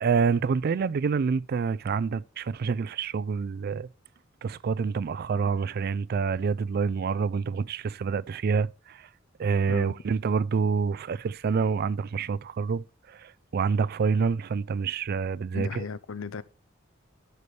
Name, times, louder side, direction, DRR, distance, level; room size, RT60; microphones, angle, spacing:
voice 1, 0.0-3.9 4.4-9.1 9.4-15.8, right 5 dB, 50° right, 0.3 m, -27 dB
voice 2, 15.5-16.4, left 5 dB, 80° left, 0.6 m, -35 dB
11.0 x 6.8 x 3.2 m
head